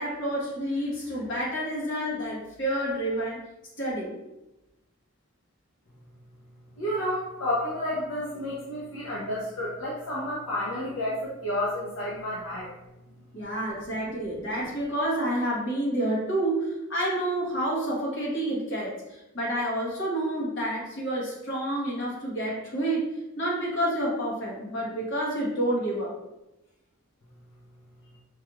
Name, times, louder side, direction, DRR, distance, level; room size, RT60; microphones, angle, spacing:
voice 1, 0.0-3.4 3.8-4.2 13.3-26.1, right 1 dB, 55° left, -5 dB, 1.3 m, -29 dB
voice 2, 6.8-12.7, left 1 dB, 75° left, -6 dB, 0.7 m, -30 dB
4.5 x 2.4 x 3.0 m, 0.97 s
head